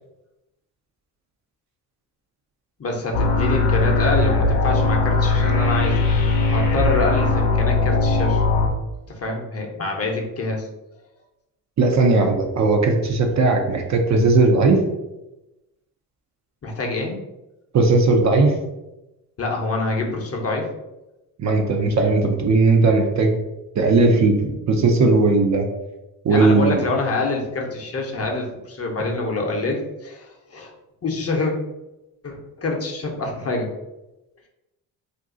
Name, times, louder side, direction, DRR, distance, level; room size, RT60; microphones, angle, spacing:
voice 1, 2.8-8.4 9.1-10.7 16.6-17.2 19.4-20.7 26.3-30.7 31.0-31.5 32.2-33.7, left 2 dB, 35° left, 1 dB, 0.8 m, -26 dB
sound 1, 3.1-8.7, left 3 dB, 65° left, 0.8 m, -19 dB
voice 2, 11.8-14.8 17.7-18.5 21.4-23.3 23.8-25.7 26.2-26.8, right 3 dB, 40° right, 3 dB, 0.6 m, -17 dB
2.6 x 2.3 x 3.7 m, 0.97 s
supercardioid pair, 60°, 43 cm